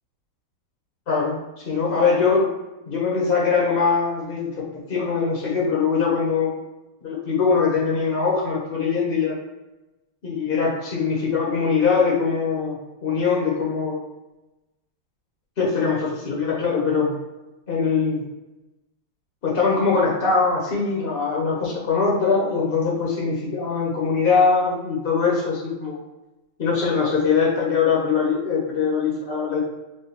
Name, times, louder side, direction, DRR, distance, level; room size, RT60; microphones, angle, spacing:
voice 1, 1.1-1.4 1.6-2.5 2.9-6.5 7.0-9.4 10.2-14.0 15.6-17.1 17.7-18.2 19.4-26.0 26.6-29.6, left 5 dB, 65° left, -3 dB, 0.5 m, -22 dB
5.9 x 2.1 x 2.9 m, 1.0 s
omnidirectional pair, 2.2 m